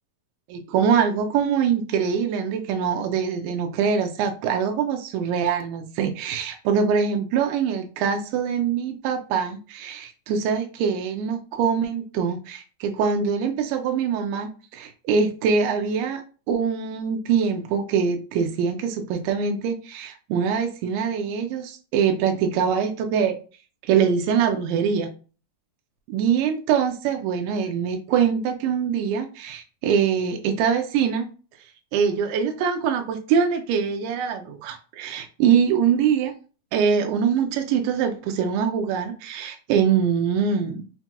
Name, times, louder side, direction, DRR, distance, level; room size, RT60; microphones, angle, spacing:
voice 1, 0.5-23.4 23.8-25.1 26.1-31.3 31.9-36.3 36.7-40.8, right 7 dB, 85° right, 5 dB, 2.1 m, -23 dB
5.6 x 2.2 x 2.8 m, 0.36 s
omnidirectional pair, 3.7 m